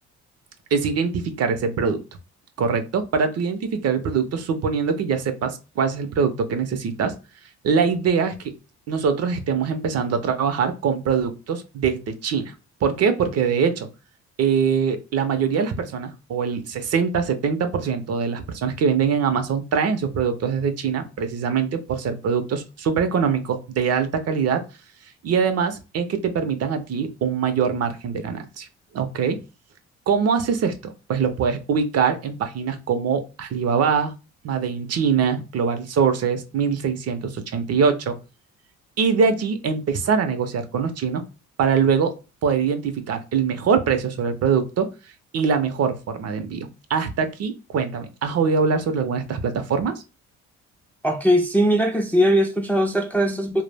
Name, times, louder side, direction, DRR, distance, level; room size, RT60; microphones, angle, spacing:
voice 1, 0.7-2.0 2.6-7.1 7.6-8.5 8.9-12.5 12.8-13.9 14.4-24.6 25.2-28.7 28.9-29.4 30.1-30.7 31.1-34.1 34.4-38.1 39.0-41.2 41.6-42.1 42.4-44.9 45.3-50.0, right 6 dB, 55° right, 0.5 m, -23 dB
voice 2, 51.0-53.6, equal, 5° left, 0.3 m, -20 dB
2.1 x 2.0 x 3.3 m
cardioid pair, 90°, 30 cm